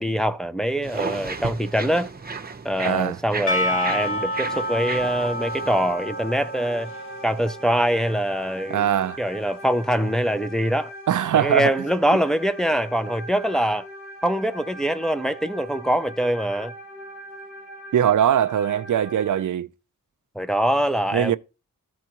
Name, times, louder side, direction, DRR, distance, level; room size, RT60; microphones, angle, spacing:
voice 1, 0.0-2.1 2.6-6.9 7.2-8.9 9.2-10.9 11.3-13.9 14.2-16.7 20.4-21.4, equal, ahead, 0.4 m, -23 dB
sound 1, 0.8-5.9, right 4 dB, 25° right, 0.7 m, -34 dB
voice 2, 2.8-3.2 8.7-9.2 11.1-11.7 17.9-19.7 21.1-21.4, right 10 dB, 60° right, 0.4 m, -21 dB
Percussion / Church bell, 3.5-8.2, equal, 35° left, 1.1 m, -29 dB
sound 2, 4.3-19.4, equal, 55° left, 1.5 m, -41 dB
13.5 x 4.6 x 2.9 m
wide cardioid pair, 130°, 35 cm